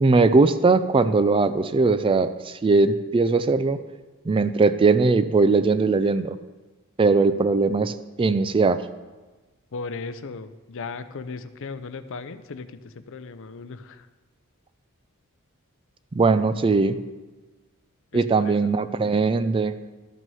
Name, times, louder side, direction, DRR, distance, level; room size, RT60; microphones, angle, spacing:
voice 1, 0.0-3.8 4.3-6.4 7.0-8.8 16.2-17.0 18.1-19.8, right 3 dB, 25° right, 12 dB, 0.3 m, -20 dB
voice 2, 9.7-14.1 18.1-18.7, left 4 dB, 65° left, 12 dB, 0.6 m, -37 dB
12.5 x 6.0 x 5.5 m, 1.3 s
head